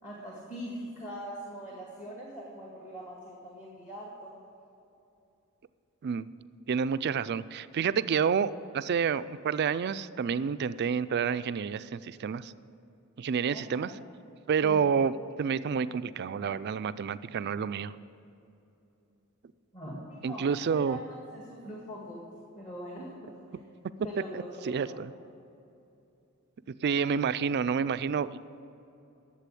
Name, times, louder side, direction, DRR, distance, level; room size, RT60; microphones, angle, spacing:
voice 1, 0.0-4.4 13.5-14.0 14.6-14.9 19.7-22.2 22.5-23.6 24.0-25.0, equal, 35° left, -3 dB, 1.9 m, -42 dB
voice 2, 6.7-12.5 13.2-13.9 14.5-17.9 20.2-21.0 24.3-25.1 26.8-28.3, right 6 dB, 50° right, 15 dB, 0.3 m, -29 dB
11.5 x 7.6 x 8.4 m, 2.8 s
head